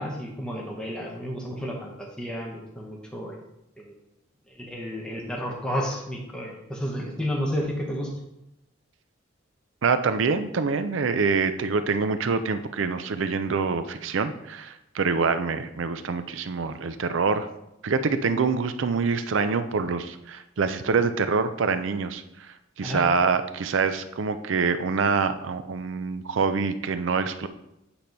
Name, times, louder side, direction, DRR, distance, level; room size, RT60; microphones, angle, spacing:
voice 1, 0.0-3.4 3.8-3.9 4.5-8.1 22.8-23.0, equal, 5° left, -2 dB, 1.0 m, -31 dB
voice 2, 9.8-17.5 17.8-22.2 22.8-27.5, right 5 dB, 70° right, 11 dB, 0.5 m, -25 dB
8.4 x 3.0 x 5.2 m, 0.86 s
head